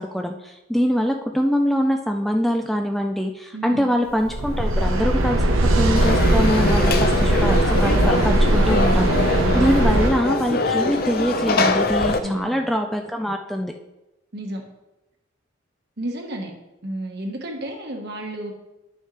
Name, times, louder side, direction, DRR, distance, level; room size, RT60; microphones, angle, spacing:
voice 1, 0.0-5.5 5.7-13.7, equal, ahead, 3 dB, 0.4 m, -24 dB
voice 2, 3.5-3.9 8.8-9.7 12.2-12.6 14.3-14.6 16.0-16.5 16.8-18.5, right 1 dB, 50° right, 2 dB, 1.4 m, -32 dB
sound 1, 4.2-10.1, right 1 dB, 85° right, 1.0 m, -19 dB
Conversation / Crowd, 6.0-12.2, left 3 dB, 45° left, 0.6 m, -23 dB
10.5 x 6.4 x 3.3 m, 0.99 s
head